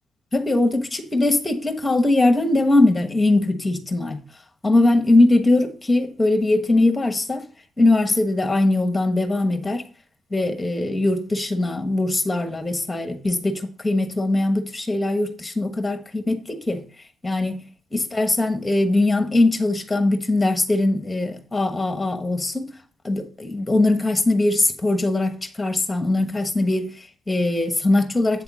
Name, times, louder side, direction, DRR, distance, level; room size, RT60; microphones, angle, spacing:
voice 1, 0.3-4.2 4.6-7.5 7.8-9.8 10.3-16.8 17.2-17.6 17.9-22.7 23.0-28.4, left 2 dB, 15° left, 1.2 m, -21 dB
8.4 x 3.5 x 6.0 m
cardioid pair, 90°, 0 cm